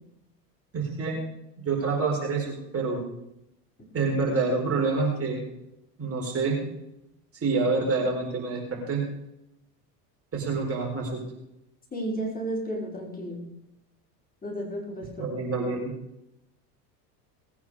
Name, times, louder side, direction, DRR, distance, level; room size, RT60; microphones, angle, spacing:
voice 1, 0.7-1.2 1.6-3.0 3.9-5.4 6.0-6.7 7.4-9.0 10.3-11.2 15.2-15.9, right 4 dB, 30° right, 0 dB, 4.7 m, -27 dB
voice 2, 11.9-13.4 14.4-15.3, right 1 dB, 20° left, -2 dB, 5.3 m, -33 dB
19.5 x 9.4 x 5.0 m, 0.83 s
hypercardioid pair, 80°, 48 cm